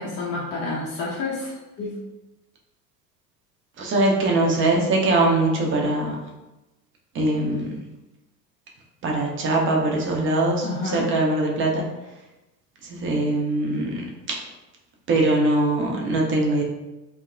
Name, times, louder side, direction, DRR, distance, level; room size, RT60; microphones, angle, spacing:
voice 1, 0.0-2.0 10.6-11.0, left 3 dB, 30° left, -5 dB, 0.5 m, -29 dB
voice 2, 3.8-6.2 7.1-7.7 9.0-11.9 12.9-14.0 14.3-14.4 15.1-16.6, right 2 dB, 25° right, -1 dB, 0.6 m, -22 dB
2.7 x 2.1 x 2.4 m, 1.0 s
figure-of-eight pair, 70°, 48 cm